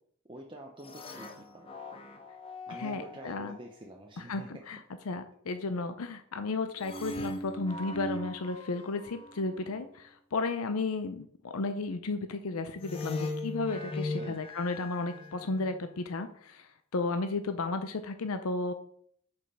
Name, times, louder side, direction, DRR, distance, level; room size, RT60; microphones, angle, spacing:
voice 1, 0.3-1.7 2.7-4.7 14.2-14.4, right 1 dB, 20° right, 0 dB, 0.7 m, -47 dB
sound 1, 0.8-3.4 6.8-9.9 12.8-15.9, left 2 dB, 25° left, 0.8 m, -40 dB
voice 2, 2.7-3.6 4.2-4.8 5.1-18.7, left 3 dB, 80° left, 9 dB, 0.6 m, -34 dB
7.1 x 5.4 x 5.4 m, 0.63 s
head